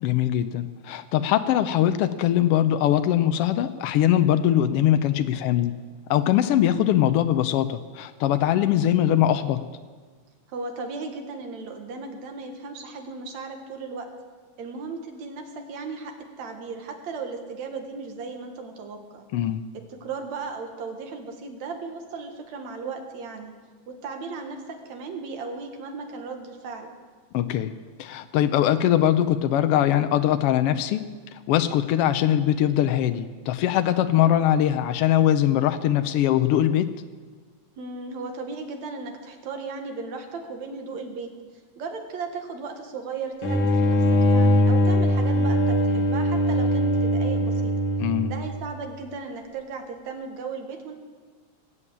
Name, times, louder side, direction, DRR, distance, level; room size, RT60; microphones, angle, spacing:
voice 1, 0.0-5.7 6.1-9.6 19.3-19.6 27.3-27.7 28.0-31.0 31.5-36.9 48.0-48.3, left 11 dB, 85° left, 9 dB, 1.3 m, -21 dB
voice 2, 10.5-14.1 14.6-19.3 19.7-23.5 23.9-26.9 37.8-41.3 41.8-47.7 48.2-50.9, right 4 dB, 70° right, 4 dB, 2.8 m, -36 dB
sound 1, 43.4-48.8, equal, 55° left, 1.8 m, -21 dB
19.5 x 8.5 x 8.6 m, 1.5 s
omnidirectional pair, 3.3 m